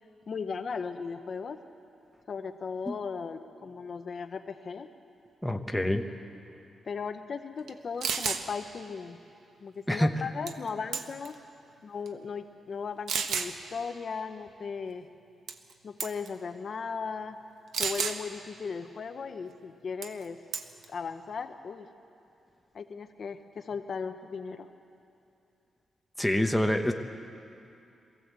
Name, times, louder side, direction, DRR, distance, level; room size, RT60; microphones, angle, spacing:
voice 1, 0.3-1.6 2.3-4.9 6.8-9.2 9.6-11.3 11.8-15.1 15.8-17.4 17.8-20.4 20.9-21.9 22.7-24.7, left 5 dB, 45° left, 8 dB, 0.7 m, -37 dB
voice 2, 5.4-6.0 9.9-10.1 26.2-26.9, left 1 dB, 5° left, 5 dB, 0.8 m, -26 dB
sound 1, 7.7-7.8 8.0-8.4 10.5-10.7 10.9-11.4 12.1-12.2 13.1-13.5 15.5-15.7 16.0-16.3 17.7-18.2 20.0-20.2 20.5-20.9, right 6 dB, 85° right, 1.1 m, -31 dB
22.5 x 15.0 x 8.1 m, 2.7 s
wide cardioid pair, 165°, 0 cm